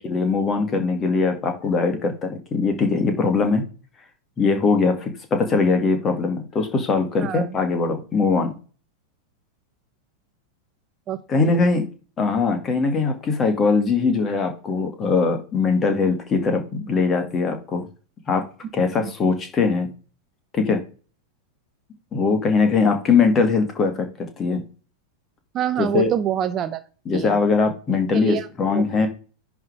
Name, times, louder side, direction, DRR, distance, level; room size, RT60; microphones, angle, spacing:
voice 1, 0.0-3.6 4.4-8.5 11.3-11.8 12.2-17.9 18.3-18.4 18.7-19.9 20.5-20.8 22.1-24.6 25.8-26.1 27.1-29.1, left 4 dB, 25° left, 6 dB, 2.3 m, -21 dB
voice 2, 11.1-11.6 19.0-19.1 25.5-26.8 27.1-27.4 28.1-29.0, right 10 dB, 30° right, 11 dB, 0.8 m, -26 dB
10.5 x 3.7 x 4.9 m, 0.36 s
figure-of-eight pair, 90°, 0 cm